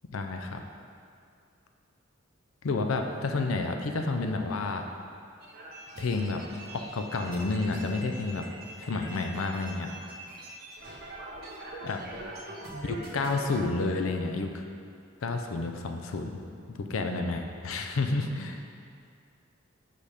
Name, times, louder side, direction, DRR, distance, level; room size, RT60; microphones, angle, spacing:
voice 1, 0.1-0.6 2.6-4.8 6.0-6.4 6.7-8.4 8.8-9.9 11.8-12.0 12.8-14.5 15.2-16.4 16.7-18.6, left 3 dB, 85° left, 4 dB, 0.5 m, -30 dB
sound 1, 5.4-13.6, right 1 dB, 50° right, 0.9 m, -43 dB
5.2 x 4.1 x 5.0 m, 2.4 s
head